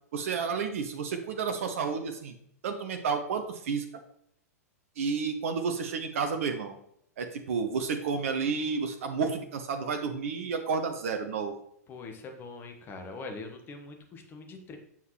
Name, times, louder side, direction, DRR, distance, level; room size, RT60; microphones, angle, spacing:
voice 1, 0.1-2.3 2.6-3.8 5.0-6.7 7.2-11.5, right 5 dB, 55° right, 6 dB, 0.8 m, -31 dB
voice 2, 11.9-14.8, left 3 dB, 25° left, 4 dB, 1.1 m, -42 dB
7.3 x 5.7 x 3.0 m, 0.70 s
figure-of-eight pair, 100°, 9 cm